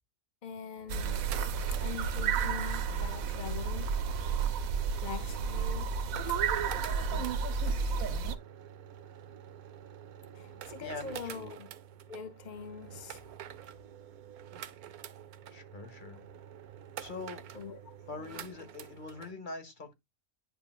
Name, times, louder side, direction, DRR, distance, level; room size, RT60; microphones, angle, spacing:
voice 1, 0.4-1.3 1.8-3.9 5.0-5.9 6.3-6.4 6.7-7.3 10.3-11.7 12.1-13.2 17.5-17.8, left 6 dB, 50° left, 0.5 m, -43 dB
sound 1, 0.8-19.3, right 10 dB, 85° right, 1.2 m, -48 dB
sound 2, 0.9-8.4, right 6 dB, 70° right, 1.2 m, -31 dB
voice 2, 10.8-11.5 15.5-16.2 17.0-17.5 18.0-19.9, left 3 dB, 35° left, 1.5 m, -43 dB
10.0 x 5.7 x 2.4 m
omnidirectional pair, 1.5 m